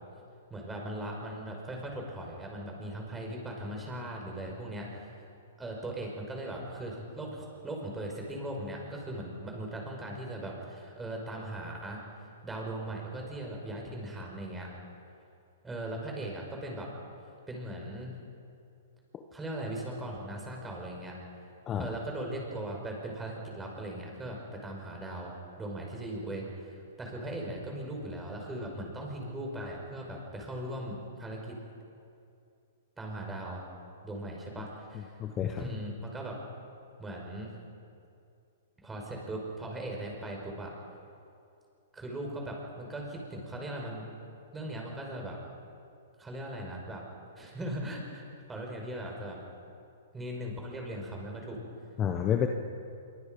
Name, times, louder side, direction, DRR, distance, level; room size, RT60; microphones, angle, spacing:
voice 1, 0.5-5.1 5.6-12.0 12.4-14.7 15.6-16.9 17.5-18.2 19.3-21.2 21.8-31.6 33.0-33.6 34.0-35.1 35.6-36.4 37.0-37.5 38.8-40.7 41.9-44.1 44.5-45.4 46.2-47.0 47.4-49.4 50.1-51.6, right 1 dB, 10° right, 0 dB, 5.3 m, -39 dB
voice 2, 34.9-35.7 52.0-52.5, left 9 dB, 20° left, 4 dB, 1.2 m, -30 dB
26.0 x 24.0 x 5.4 m, 2.5 s
hypercardioid pair, 150°, 0 cm